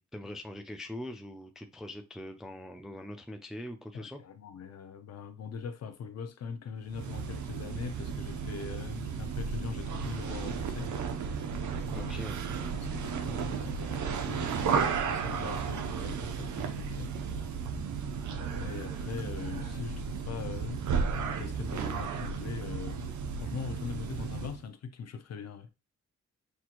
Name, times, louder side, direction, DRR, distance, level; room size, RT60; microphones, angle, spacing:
voice 1, 0.0-4.2 11.9-12.4, left 1 dB, ahead, 0.3 m, -42 dB
voice 2, 3.9-10.9 11.9-12.2 12.9-17.1 18.6-20.8 21.1-25.7, left 6 dB, 60° left, 0.7 m, -41 dB
sound 1, 6.9-24.6, right 6 dB, 85° right, 0.7 m, -34 dB
6.2 x 2.5 x 2.9 m
wide cardioid pair, 170°, 29 cm